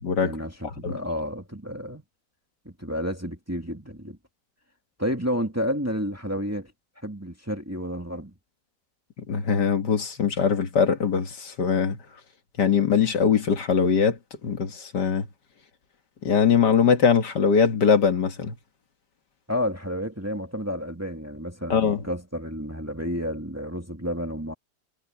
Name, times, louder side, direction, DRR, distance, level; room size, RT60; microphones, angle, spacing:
voice 1, 0.2-2.0 2.7-4.2 5.0-6.7 7.0-8.3 19.5-24.5, equal, 10° right, 2.1 m, -31 dB
voice 2, 9.3-12.0 12.6-15.3 16.2-18.5 21.7-22.0, left 6 dB, 65° left, 2.1 m, -22 dB
omnidirectional pair, 2.0 m